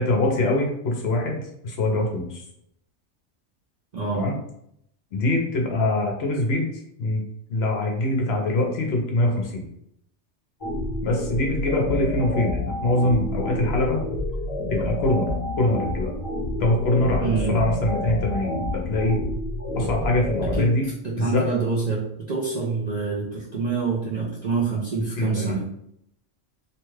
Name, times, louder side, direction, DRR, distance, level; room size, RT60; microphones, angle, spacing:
voice 1, 0.0-2.4 4.1-4.4 5.1-7.2 7.5-9.6 11.0-14.0 14.7-15.3 15.6-16.1 16.6-19.2 19.8-20.9 21.2-21.4 25.2-25.5, left 1 dB, 60° left, 0 dB, 0.8 m, -23 dB
voice 2, 3.9-4.3 17.2-17.5 19.8-19.9 20.5-20.7 21.0-25.7, right 4 dB, 55° right, -5 dB, 0.4 m, -26 dB
sound 1, 10.6-20.6, left 1 dB, 30° left, 0.5 m, -28 dB
2.8 x 2.2 x 3.1 m, 0.74 s
omnidirectional pair, 1.3 m